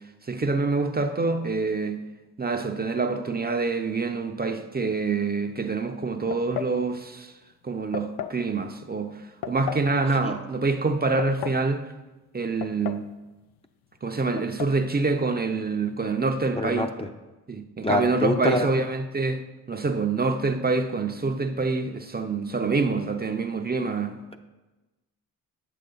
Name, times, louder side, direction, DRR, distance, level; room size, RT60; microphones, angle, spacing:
voice 1, 0.3-2.0 2.4-7.3 7.6-9.1 9.5-11.8 12.3-13.1 14.0-16.9 17.5-19.4 19.7-24.2, right 3 dB, 25° right, 6 dB, 0.6 m, -26 dB
sound 1, 6.3-6.8 7.9-8.4 9.4-9.9 10.9-11.7 12.6-13.1 13.4-13.5 14.4-14.8, left 10 dB, 85° left, 0.5 m, -34 dB
voice 2, 16.5-17.1 17.8-18.7, left 2 dB, 15° left, 5 dB, 0.5 m, -25 dB
8.3 x 6.7 x 3.9 m, 1.1 s
cardioid pair, 80°, 38 cm